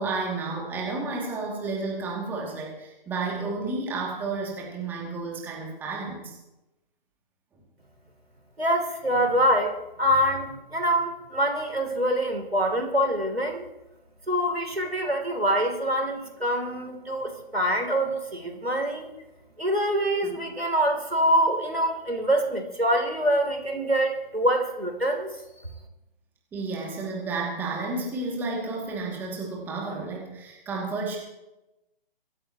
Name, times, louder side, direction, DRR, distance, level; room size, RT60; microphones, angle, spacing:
voice 1, 0.0-6.4 20.2-20.4 26.5-31.2, right 3 dB, 5° right, -2 dB, 2.5 m, -31 dB
voice 2, 8.6-13.7 14.3-19.1 19.6-25.3, equal, 90° right, 3 dB, 3.4 m, -25 dB
23.5 x 14.5 x 3.1 m, 0.95 s
figure-of-eight pair, 140°, 30 cm